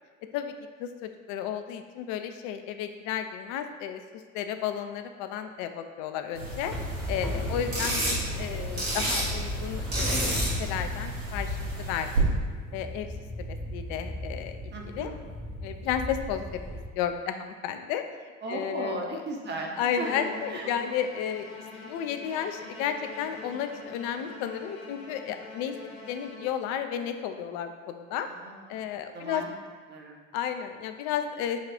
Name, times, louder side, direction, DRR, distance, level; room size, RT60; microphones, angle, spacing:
voice 1, 0.8-4.0 4.3-6.7 7.1-12.1 12.7-13.1 13.4-15.1 15.6-16.6 17.0-18.0 18.5-19.2 19.8-21.5 21.8-25.8 26.1-28.3 28.7-29.4 30.3-31.6, left 9 dB, 50° left, 8 dB, 0.4 m, -33 dB
sound 1, 6.3-12.2, right 1 dB, 80° right, 1.3 m, -32 dB
sound 2, 6.7-16.9, left 1 dB, ahead, 0.8 m, -35 dB
voice 2, 14.7-15.2 18.4-20.7 28.3-28.8 29.1-29.5 29.9-30.2, right 3 dB, 25° right, 0 dB, 0.7 m, -37 dB
Bowed string instrument, 19.9-26.9, left 3 dB, 80° left, 0.7 m, -44 dB
4.1 x 2.4 x 4.3 m, 1.5 s
figure-of-eight pair, 60°, 39 cm